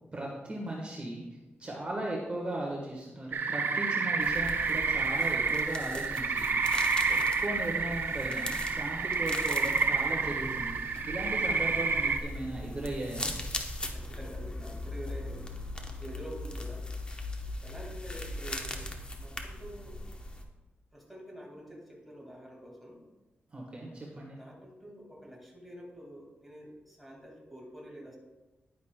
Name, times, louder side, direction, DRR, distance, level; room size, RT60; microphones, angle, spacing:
voice 1, 0.1-1.2 1.6-13.3 23.5-24.4, right 1 dB, 30° right, -2 dB, 1.3 m, -37 dB
sound 1, 3.3-12.2, right 4 dB, 55° right, 0.6 m, -29 dB
sound 2, 4.2-20.4, left 1 dB, 25° left, 0.8 m, -40 dB
voice 2, 13.9-15.4 16.0-16.9 17.6-18.8 19.2-20.0 20.9-23.0 24.3-28.2, equal, ahead, -2 dB, 2.0 m, -47 dB
10.5 x 9.3 x 2.2 m, 1.1 s
wide cardioid pair, 110°, 4 cm